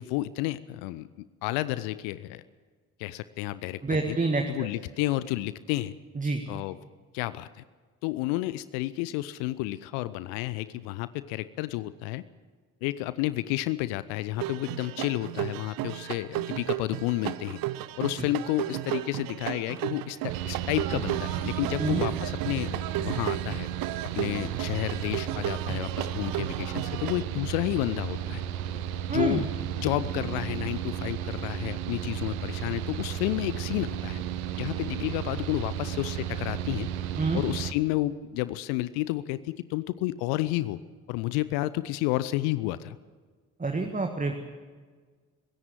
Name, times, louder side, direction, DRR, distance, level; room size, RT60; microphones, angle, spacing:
voice 1, 0.0-2.4 3.0-4.2 4.5-6.0 6.5-6.8 7.1-7.6 8.0-12.2 12.8-17.6 18.0-23.7 24.1-28.4 29.1-29.5 29.8-34.2 34.5-36.9 37.3-40.8 41.1-43.0, left 17 dB, 65° left, 17 dB, 0.7 m, -31 dB
voice 2, 3.8-4.7 6.2-6.4 21.8-22.0 29.1-29.5 37.2-37.4 43.6-44.3, right 3 dB, 20° right, 4 dB, 1.8 m, -27 dB
sound 1, 14.4-27.2, right 15 dB, 55° right, 0.8 m, -34 dB
Mechanical fan, 20.3-37.7, right 10 dB, 70° right, 1.1 m, -33 dB
21.5 x 17.0 x 7.6 m, 1.5 s
figure-of-eight pair, 40°, 43 cm